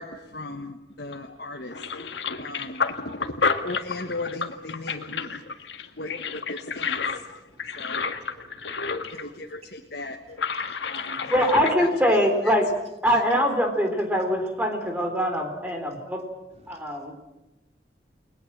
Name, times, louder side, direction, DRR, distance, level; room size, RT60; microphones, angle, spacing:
voice 1, 0.0-1.8 2.4-5.4 5.9-7.4 7.7-8.0 9.1-10.2 10.9-11.9 12.4-12.5 13.1-13.2, left 2 dB, 60° left, 2 dB, 1.5 m, -37 dB
sound 1, 1.1-1.3 1.7-9.3 9.5-9.6 10.3-11.7, left 5 dB, 90° left, 1.7 m, -30 dB
voice 2, 7.5-9.1 10.6-10.8 14.2-14.3 16.6-16.8, equal, 40° right, 3 dB, 3.1 m, -52 dB
voice 3, 10.9-12.6 13.0-16.2 16.7-17.2, equal, 10° right, 4 dB, 3.8 m, -23 dB
30.0 x 20.5 x 7.4 m, 1.0 s
head